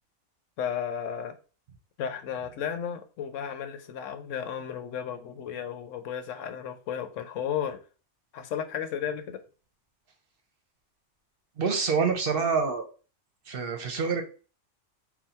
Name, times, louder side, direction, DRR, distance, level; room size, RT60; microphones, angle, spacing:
voice 1, 0.6-1.3 2.0-7.8 8.3-9.4, left 8 dB, 90° left, 1.0 m, -34 dB
voice 2, 11.6-12.9 13.5-14.2, right 5 dB, 55° right, 0.8 m, -26 dB
3.9 x 2.2 x 4.2 m
omnidirectional pair, 1.3 m